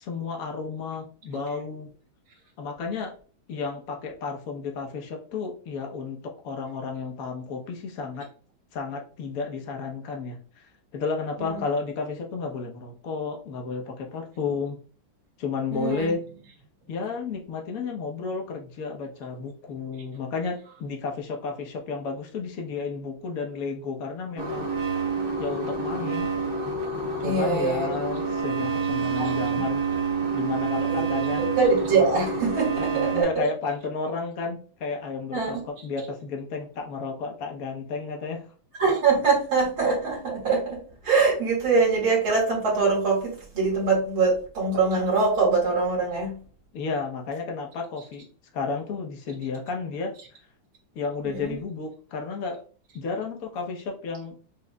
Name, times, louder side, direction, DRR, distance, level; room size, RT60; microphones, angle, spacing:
voice 1, 0.0-1.9 2.6-3.1 3.5-8.3 8.7-14.8 15.4-16.2 16.9-24.7 25.4-26.3 27.2-29.9 30.3-31.4 32.8-38.4 46.7-48.3 48.5-50.1 50.9-52.6 52.9-54.4, left 4 dB, 55° left, 2 dB, 1.1 m, -32 dB
voice 2, 15.7-16.1 27.2-27.9 29.2-29.6 30.9-31.0 31.4-33.4 35.3-35.6 38.8-46.4 51.2-51.5, right 4 dB, 75° right, -4 dB, 2.4 m, -24 dB
sound 1, 24.4-33.2, right 4 dB, 40° right, 0.8 m, -28 dB
6.3 x 3.0 x 2.3 m, 0.41 s
omnidirectional pair, 2.3 m